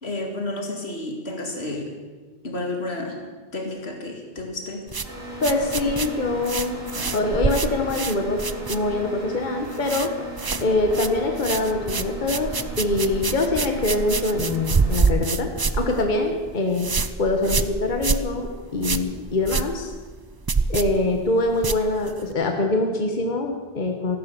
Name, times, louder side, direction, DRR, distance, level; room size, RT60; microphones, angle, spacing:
voice 1, 0.0-1.9 2.4-3.2 3.5-4.8 6.9-7.2, left 2 dB, 80° left, 2 dB, 2.6 m, -31 dB
sound 1, 4.9-9.2 9.5-10.1 10.4-22.3, right 4 dB, 30° right, 0.4 m, -27 dB
sound 2, 5.0-15.0, equal, 60° right, 6.6 m, -37 dB
voice 2, 5.4-6.8 7.1-8.4 8.7-10.1 10.6-16.9 17.2-19.9 20.7-24.2, left 2 dB, 50° left, 3 dB, 1.5 m, -24 dB
14.5 x 12.0 x 7.0 m, 1.3 s
omnidirectional pair, 1.1 m